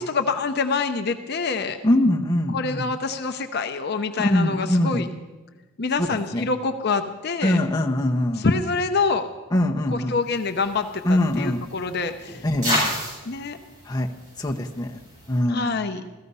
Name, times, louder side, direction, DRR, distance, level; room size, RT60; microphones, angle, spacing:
voice 1, 0.0-1.8 2.5-5.1 5.8-7.6 8.3-9.3 9.9-12.5 13.2-13.6 15.5-16.0, left 4 dB, 45° left, 7 dB, 0.6 m, -26 dB
voice 2, 1.8-2.8 4.2-5.0 6.0-6.1 6.3-6.4 7.4-8.5 9.5-10.1 11.0-11.6 12.4-13.0 13.9-14.1 14.4-15.0 15.3-15.7, left 1 dB, 20° left, 0 dB, 0.9 m, -22 dB
sound 1, 10.3-15.4, equal, 35° right, 6.9 m, -32 dB
15.5 x 14.0 x 5.5 m, 1.2 s
head